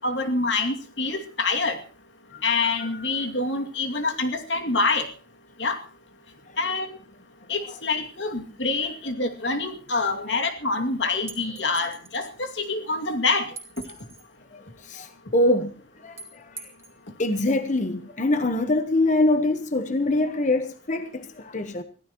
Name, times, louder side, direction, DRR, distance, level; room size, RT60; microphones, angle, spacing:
voice 1, 0.0-1.8 2.4-5.1 5.6-5.8 6.6-6.9 7.5-13.5, left 3 dB, 90° left, 2.5 m, -26 dB
sound 1, 11.3-12.3 13.6-14.3 16.2-17.0, right 4 dB, 15° right, 2.9 m, -43 dB
voice 2, 14.5-15.7 16.0-16.7 17.2-21.8, left 2 dB, 45° left, 1.1 m, -24 dB
24.5 x 16.0 x 3.1 m
head